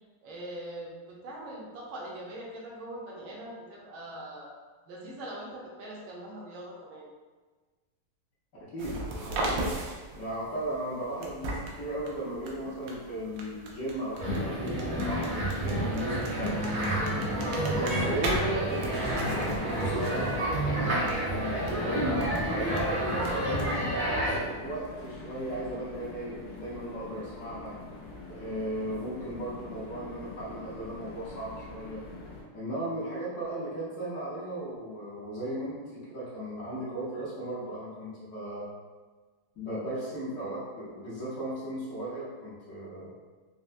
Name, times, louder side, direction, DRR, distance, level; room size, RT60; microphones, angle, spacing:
voice 1, 0.2-4.6 4.9-7.0, right 1 dB, 70° right, -4 dB, 1.5 m, -42 dB
voice 2, 8.6-9.6 10.1-16.9 17.7-20.5 21.0-21.7 22.5-23.8 24.3-27.7 28.2-32.0 32.5-38.7 39.5-43.1, right 1 dB, 55° left, -9 dB, 0.9 m, -36 dB
sound 1, 8.8-23.9, right 1 dB, 90° right, 1.5 m, -39 dB
sound 2, 14.2-24.4, right 1 dB, 55° right, 1.0 m, -29 dB
sound 3, 19.4-32.4, left 2 dB, 85° left, 1.6 m, -45 dB
4.4 x 2.0 x 2.5 m, 1.4 s
omnidirectional pair, 2.4 m